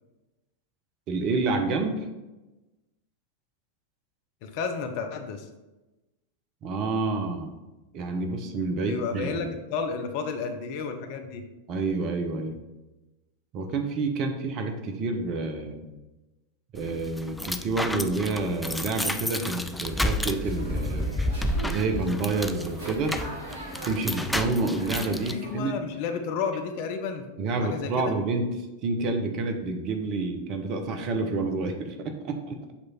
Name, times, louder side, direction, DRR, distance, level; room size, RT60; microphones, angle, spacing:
voice 1, 1.1-2.1 6.6-7.5 7.9-9.5 11.7-12.6 13.5-15.9 16.7-21.1 21.6-23.2 23.8-25.7 27.4-28.6 28.8-32.7, right 3 dB, 40° right, 5 dB, 0.8 m, -28 dB
voice 2, 4.4-5.5 8.8-11.4 25.3-27.3 27.6-28.1, left 5 dB, 45° left, 6 dB, 0.7 m, -32 dB
sound 1, 16.7-25.3, left 1 dB, 5° left, 0.3 m, -31 dB
sound 2, 19.7-25.6, right 1 dB, 70° right, 1.1 m, -41 dB
6.9 x 3.2 x 4.3 m, 1.1 s
figure-of-eight pair, 90°, 0 cm